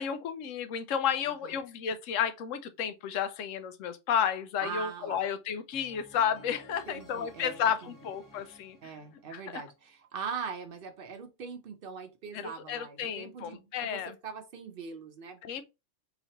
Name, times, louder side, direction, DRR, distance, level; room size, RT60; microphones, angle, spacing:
voice 1, 0.0-8.8 9.3-9.6 12.3-14.1 15.4-15.6, left 8 dB, 85° left, 1.0 m, -32 dB
voice 2, 4.6-5.2 6.9-7.9 8.8-15.6, right 6 dB, 55° right, 0.7 m, -41 dB
sound 1, 5.7-9.8, left 1 dB, 15° left, 0.9 m, -54 dB
4.1 x 3.0 x 2.8 m
omnidirectional pair, 1.3 m